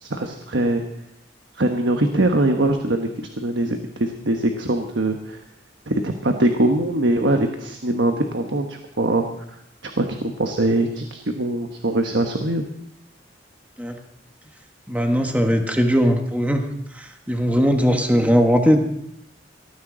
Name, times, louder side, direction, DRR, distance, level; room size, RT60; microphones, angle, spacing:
voice 1, 0.0-0.8 1.5-5.4 5.9-9.3 9.8-12.6, right 1 dB, 80° right, 5 dB, 1.2 m, -22 dB
voice 2, 14.9-16.6 16.9-18.8, equal, 10° right, 4 dB, 1.2 m, -19 dB
18.5 x 14.0 x 3.9 m, 0.77 s
head